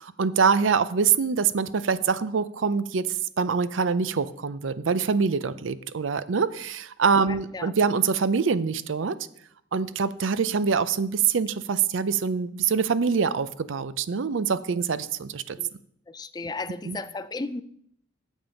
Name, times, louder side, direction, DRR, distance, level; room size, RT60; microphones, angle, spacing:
voice 1, 0.0-9.2 9.7-15.6 16.9-17.0, right 5 dB, 85° right, 0.5 m, -25 dB
voice 2, 7.2-7.7 15.6-15.7 16.1-17.6, left 3 dB, 20° left, 0.4 m, -35 dB
8.8 x 7.3 x 5.3 m
head